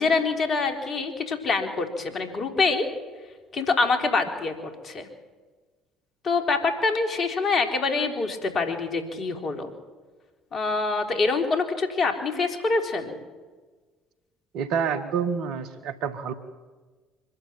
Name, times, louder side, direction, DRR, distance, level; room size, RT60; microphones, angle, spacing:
voice 1, 0.0-2.9 3.5-5.1 6.2-9.7 10.5-13.2, left 4 dB, 45° left, 5 dB, 3.6 m, -25 dB
voice 2, 14.5-16.3, right 6 dB, 60° right, 10 dB, 1.6 m, -28 dB
24.5 x 12.5 x 9.2 m, 1.3 s
figure-of-eight pair, 55°, 0 cm